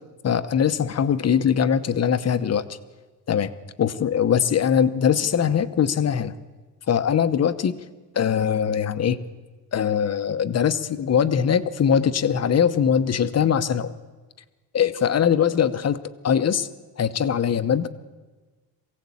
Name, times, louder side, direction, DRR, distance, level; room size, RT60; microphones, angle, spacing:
voice 1, 0.2-2.7 3.3-3.5 3.8-6.3 6.9-7.7 8.1-9.2 9.7-13.9 14.7-16.0 16.2-16.7 17.0-17.9, left 8 dB, 40° left, 11 dB, 1.0 m, -21 dB
22.5 x 16.5 x 8.5 m, 1.3 s
cardioid pair, 140°, 40 cm